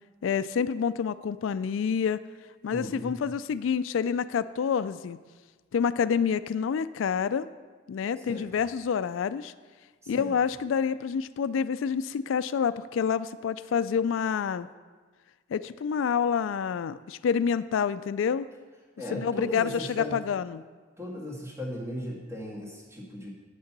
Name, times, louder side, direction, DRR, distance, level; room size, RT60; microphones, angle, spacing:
voice 1, 0.2-2.2 2.6-5.2 5.7-7.5 7.9-9.5 10.1-14.7 15.5-18.5 19.1-20.6, left 7 dB, 85° left, 15 dB, 0.3 m, -28 dB
voice 2, 2.7-3.1 8.2-8.5 10.0-10.4 19.0-20.2 21.0-23.3, equal, 15° right, -3 dB, 1.8 m, -37 dB
8.6 x 6.6 x 6.0 m, 1.4 s
head